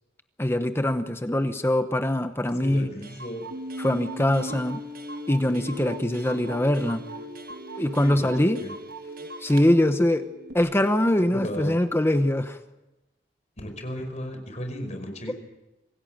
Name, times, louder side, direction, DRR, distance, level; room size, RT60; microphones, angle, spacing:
voice 1, 0.4-2.9 3.8-4.8 5.3-7.0 7.8-8.7 9.4-10.3 10.5-12.6, left 1 dB, 15° left, 9 dB, 0.9 m, -23 dB
Clock, 2.5-2.6 2.8-2.9 3.0-9.7, right 3 dB, 55° right, 1.8 m, -44 dB
voice 2, 2.6-3.4 8.0-8.3 8.6-8.7 11.3-11.8 13.6-15.3, equal, 40° left, 6 dB, 5.3 m, -35 dB
sound 1, 3.5-10.5, equal, 90° right, 2.5 m, -39 dB
26.0 x 16.5 x 9.0 m, 1.0 s
head